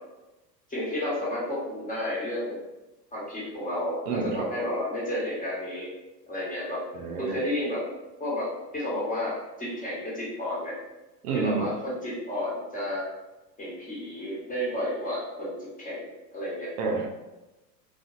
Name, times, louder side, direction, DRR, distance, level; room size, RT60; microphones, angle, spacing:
voice 1, 0.7-2.6 3.1-5.9 6.3-6.8 7.2-7.8 8.2-10.7 11.3-13.1 13.6-16.7, left 1 dB, 15° left, -7 dB, 1.1 m, -31 dB
voice 2, 4.1-4.5 6.9-7.4 11.2-11.7 16.8-17.1, right 4 dB, 60° right, 1 dB, 0.6 m, -28 dB
2.5 x 2.4 x 2.4 m, 1.0 s
hypercardioid pair, 90°, 49 cm